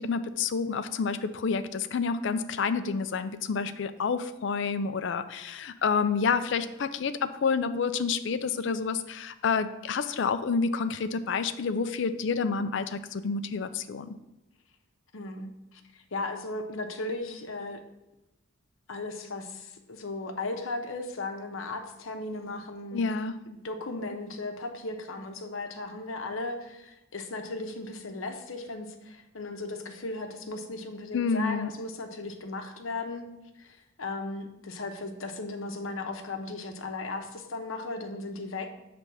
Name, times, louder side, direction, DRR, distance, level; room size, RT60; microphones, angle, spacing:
voice 1, 0.0-14.1 22.9-23.3 31.1-31.7, left 5 dB, 60° left, 11 dB, 0.4 m, -29 dB
voice 2, 15.1-17.8 18.9-23.1 23.5-33.3 33.6-38.7, left 2 dB, 80° left, 5 dB, 0.8 m, -36 dB
6.9 x 3.4 x 6.0 m, 0.95 s
head